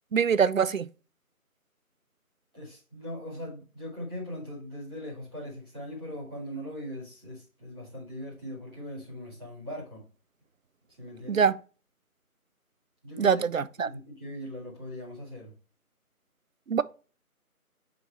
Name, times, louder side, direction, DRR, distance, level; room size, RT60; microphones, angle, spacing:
voice 1, 0.1-0.9 11.3-11.5 13.2-13.9 16.7-16.8, right 6 dB, 60° right, 0.5 m, -24 dB
voice 2, 2.5-10.0 11.0-11.5 13.0-13.4 13.8-15.5, left 1 dB, 5° right, 2.3 m, -40 dB
7.1 x 3.8 x 4.6 m
figure-of-eight pair, 175°, 45 cm